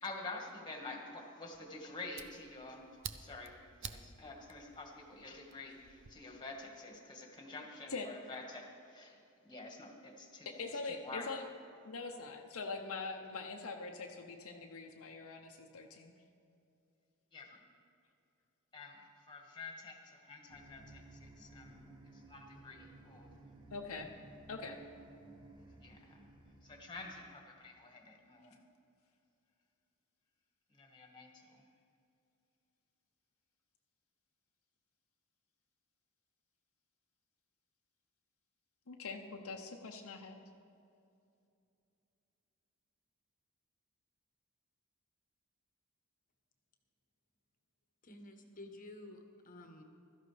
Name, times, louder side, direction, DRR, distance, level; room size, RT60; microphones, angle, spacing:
voice 1, 0.0-10.5 10.8-11.3 17.3-17.6 18.7-23.3 25.8-26.2 26.6-28.6 30.7-31.7, left 2 dB, 20° left, 1 dB, 1.6 m, -49 dB
Fire, 1.5-6.1, right 8 dB, 55° right, 0.6 m, -51 dB
voice 2, 10.5-11.4 11.8-16.1 23.7-24.1 24.5-24.8 38.9-40.4, left 4 dB, 70° left, 2 dB, 0.8 m, -43 dB
sound 1, 20.5-27.3, right 2 dB, 20° right, 1.2 m, -57 dB
voice 3, 48.0-49.8, left 1 dB, 40° left, 4 dB, 1.1 m, -52 dB
16.0 x 13.0 x 3.3 m, 2.6 s
head